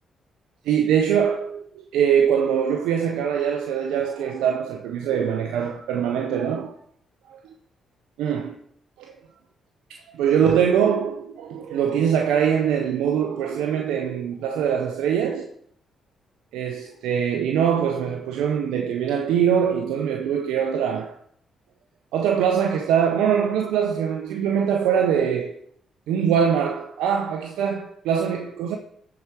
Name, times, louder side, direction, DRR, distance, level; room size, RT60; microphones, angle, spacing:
voice 1, 0.7-1.6 1.9-6.7 7.3-7.4 8.2-8.6 9.0-9.1 9.9-15.5 16.5-21.1 22.1-25.5 26.1-28.8, right 8 dB, 85° right, 0.6 m, -23 dB
12.5 x 4.8 x 4.6 m
supercardioid pair, 60°, 0 cm